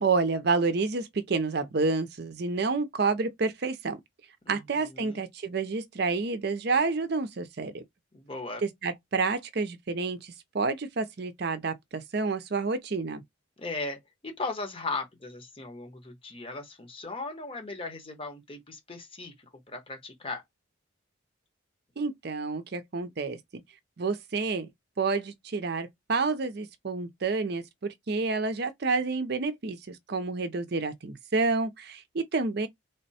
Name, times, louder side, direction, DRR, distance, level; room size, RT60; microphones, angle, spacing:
voice 1, 0.0-4.0 4.5-7.8 8.6-13.2 22.0-23.6 24.0-24.7 25.0-32.7, right 4 dB, 55° right, 0.5 m, -29 dB
voice 2, 4.4-5.3 8.1-8.6 13.6-20.4, left 3 dB, 25° left, 1.0 m, -38 dB
3.3 x 2.1 x 4.1 m
head